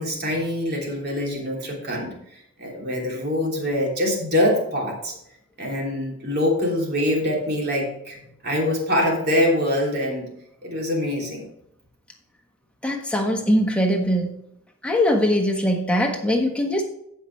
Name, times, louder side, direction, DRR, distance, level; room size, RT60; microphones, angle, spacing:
voice 1, 0.0-5.1 5.6-8.2 8.4-10.3 10.6-11.5, left 1 dB, 45° right, -1 dB, 3.1 m, -24 dB
voice 2, 12.8-14.3 14.8-16.8, equal, 5° left, 1 dB, 1.4 m, -21 dB
15.0 x 5.8 x 3.3 m, 0.77 s
head